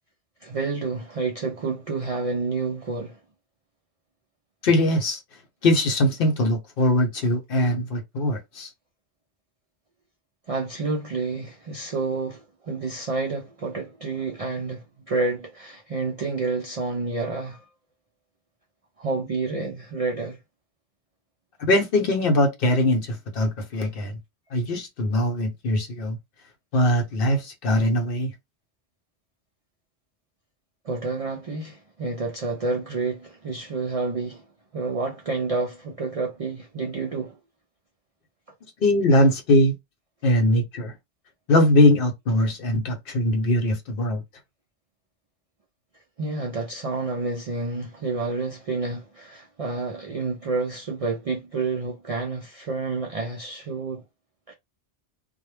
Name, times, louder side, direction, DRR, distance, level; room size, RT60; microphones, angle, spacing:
voice 1, 0.4-3.2 10.5-17.7 19.0-20.4 30.8-34.5 34.7-37.4 46.2-54.0 54.5-54.6, right 3 dB, 55° right, 0.4 m, -29 dB
voice 2, 4.6-5.2 5.6-8.7 21.6-24.2 24.5-26.2 26.7-28.3 38.8-39.7 40.2-40.9 41.5-44.2, left 1 dB, 60° left, 0.8 m, -21 dB
2.1 x 2.1 x 3.1 m
omnidirectional pair, 1.1 m